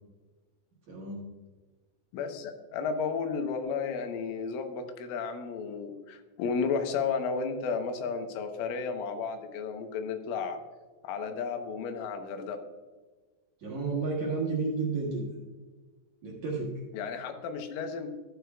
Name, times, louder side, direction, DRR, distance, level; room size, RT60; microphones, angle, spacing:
voice 1, 0.9-1.3 13.6-15.3 16.2-16.7, right 4 dB, 70° right, -3 dB, 1.8 m, -31 dB
voice 2, 2.1-10.6 11.0-12.6 16.9-18.1, left 5 dB, 85° left, 6 dB, 3.6 m, -33 dB
12.5 x 9.7 x 2.3 m, 1.3 s
omnidirectional pair, 5.7 m